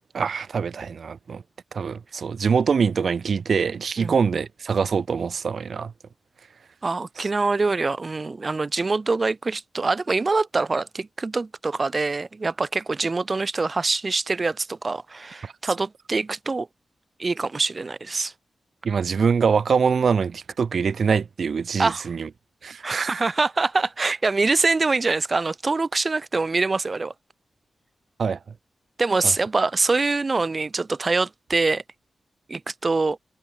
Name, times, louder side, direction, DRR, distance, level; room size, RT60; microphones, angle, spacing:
voice 1, 0.1-1.4 1.7-5.9 7.2-7.3 15.6-15.7 18.8-22.3 22.6-23.2 28.2-28.4 29.2-29.3, right 6 dB, 60° right, 7.6 m, -24 dB
voice 2, 6.8-16.7 17.2-18.3 21.8-22.1 22.8-27.1 29.0-31.8 32.5-33.2, right 3 dB, 30° right, 4.0 m, -24 dB
wide cardioid pair, 150°, 0 cm